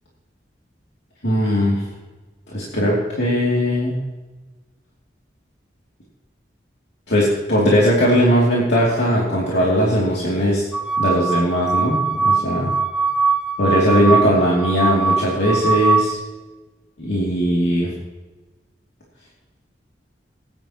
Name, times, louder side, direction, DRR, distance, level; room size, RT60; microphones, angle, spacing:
voice 1, 1.2-1.8 2.5-4.0 7.1-10.6 11.0-12.7 13.6-16.2 17.0-17.9, equal, 75° left, -5 dB, 2.8 m, -19 dB
sound 1, 10.7-16.1, right 4 dB, 5° right, 0.5 m, -21 dB
18.5 x 11.0 x 3.0 m, 1.2 s
head